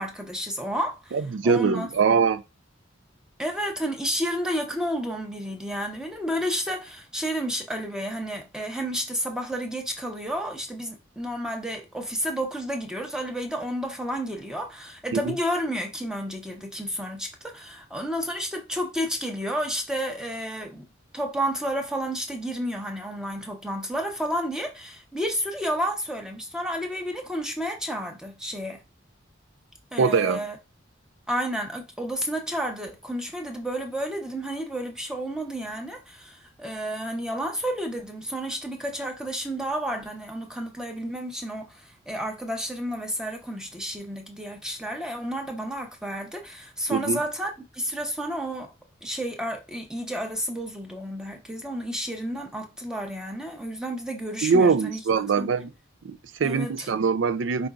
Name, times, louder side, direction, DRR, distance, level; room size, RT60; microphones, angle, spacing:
voice 1, 0.0-1.2 1.4-1.9 2.2-2.3 3.4-20.9 21.1-28.8 29.9-30.6 31.3-48.7 49.0-55.0 55.4-55.5 56.4-56.9, equal, 5° right, 0.7 m, -31 dB
voice 2, 1.1-2.4 15.1-15.3 30.0-30.4 46.9-47.2 54.4-55.7 56.0-57.7, right 5 dB, 70° right, 0.4 m, -23 dB
5.2 x 3.7 x 2.3 m
head